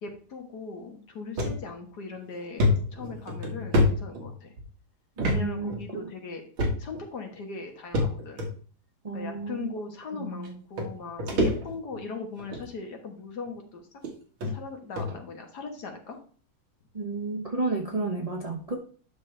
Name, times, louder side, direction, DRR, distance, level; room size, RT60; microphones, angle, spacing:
voice 1, 0.0-4.5 5.3-6.4 6.8-8.5 9.1-13.9 14.4-16.2, left 4 dB, 55° left, 3 dB, 1.8 m, -39 dB
sound 1, 1.4-1.6 2.0-2.1 2.6-4.6 5.2-5.4 5.7-5.8 6.6-7.0 7.9-8.5 9.4-9.5 10.4-10.5 10.8-12.0 12.4-12.7 13.5-13.6 14.0-14.1 14.4-14.5 15.0-15.2, left 1 dB, 75° right, 2.4 m, -26 dB
voice 2, 5.2-6.1 9.0-9.7 10.2-10.5 16.9-18.8, right 3 dB, 40° right, 0 dB, 0.5 m, -32 dB
10.0 x 6.0 x 3.3 m, 0.42 s
omnidirectional pair, 2.2 m